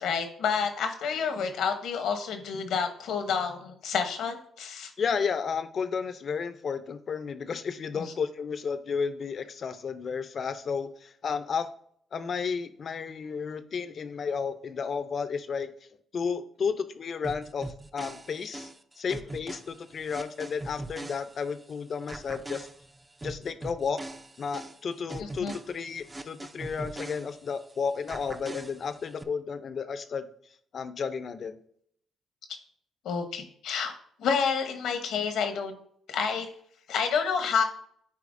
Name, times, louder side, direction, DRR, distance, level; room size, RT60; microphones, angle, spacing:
voice 1, 0.0-4.9 7.9-8.1 25.2-25.5 33.0-33.9 34.2-35.8 36.1-36.5 36.9-37.6, left 6 dB, 80° left, 7 dB, 0.9 m, -29 dB
voice 2, 5.0-11.7 12.1-15.7 16.1-18.7 19.0-22.7 23.2-24.0 24.4-30.2 30.7-31.6, left 6 dB, 50° left, 11 dB, 0.5 m, -32 dB
sound 1, 17.2-21.7 22.1-27.7 28.1-29.2, right 2 dB, 15° right, 0.5 m, -41 dB
8.3 x 4.6 x 2.6 m, 0.64 s
cardioid pair, 90°, 0 cm